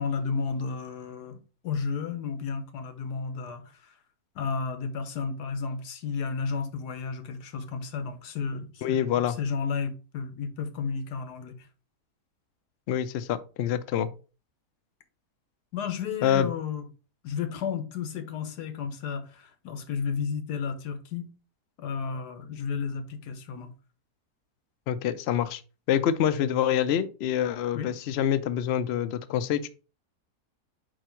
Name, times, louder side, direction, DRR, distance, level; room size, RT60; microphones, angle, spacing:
voice 1, 0.0-3.9 4.3-11.7 15.7-16.8 17.2-21.3 21.8-23.7 27.7-27.9, left 5 dB, 90° left, 1.5 m, -33 dB
voice 2, 8.8-9.4 12.9-14.1 16.2-16.5 24.9-25.6 25.9-29.7, left 9 dB, 70° left, 0.6 m, -26 dB
4.8 x 4.7 x 4.4 m
omnidirectional pair, 1.7 m